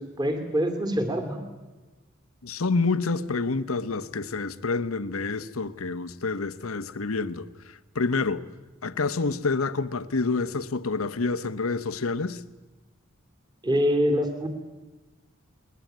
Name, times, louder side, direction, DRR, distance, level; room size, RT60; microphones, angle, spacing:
voice 1, 0.0-1.4 13.6-14.5, equal, 20° right, 2.6 m, -25 dB
voice 2, 2.4-8.4 8.8-12.4, left 3 dB, 85° left, 1.0 m, -28 dB
20.5 x 20.5 x 9.3 m
head